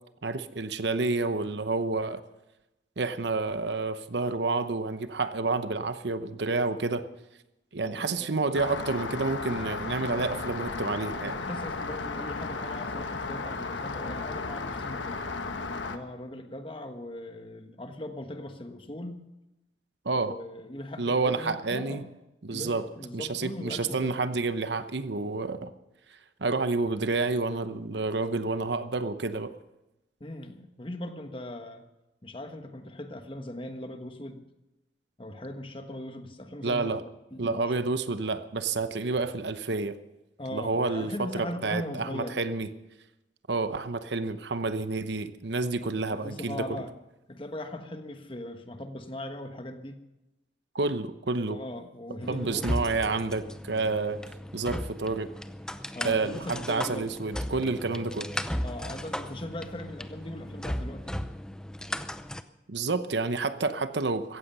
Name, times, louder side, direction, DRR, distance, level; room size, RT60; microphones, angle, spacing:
voice 1, 0.2-2.2 3.0-7.1 7.7-11.3 20.0-20.3 21.0-22.1 22.4-22.8 23.1-25.7 26.4-29.5 36.6-37.0 37.4-40.0 40.5-42.7 43.5-46.6 50.7-51.6 52.3-54.2 54.5-55.3 56.0-58.3 62.7-64.4, right 3 dB, 70° right, 11 dB, 0.9 m, -29 dB
voice 2, 7.8-8.4 11.2-15.3 15.9-19.2 20.1-22.1 22.5-24.2 30.2-31.8 32.2-34.4 35.2-36.9 37.3-37.7 40.4-42.4 45.6-46.9 47.3-50.0 51.5-52.9 55.9-57.1 58.6-61.2, left 1 dB, 30° left, 7 dB, 1.3 m, -39 dB
Rain, 8.5-16.0, left 3 dB, 85° left, 1.3 m, -34 dB
sound 1, 52.2-62.4, equal, 5° left, 0.6 m, -36 dB
16.0 x 15.0 x 5.6 m, 0.97 s
head